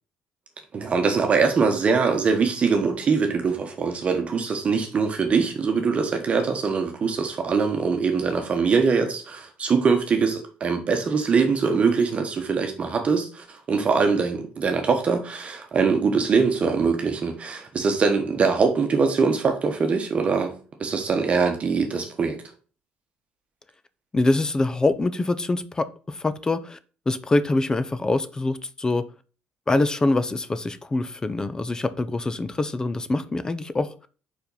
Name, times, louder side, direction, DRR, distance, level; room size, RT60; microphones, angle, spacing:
voice 1, 0.7-20.5 20.8-22.4, right 5 dB, 40° right, 4 dB, 1.1 m, -22 dB
voice 2, 24.1-26.8 27.1-29.0 29.7-33.9, left 2 dB, 20° left, 14 dB, 0.6 m, -24 dB
5.1 x 4.5 x 5.4 m, 0.38 s
cardioid pair, 90°, 3 cm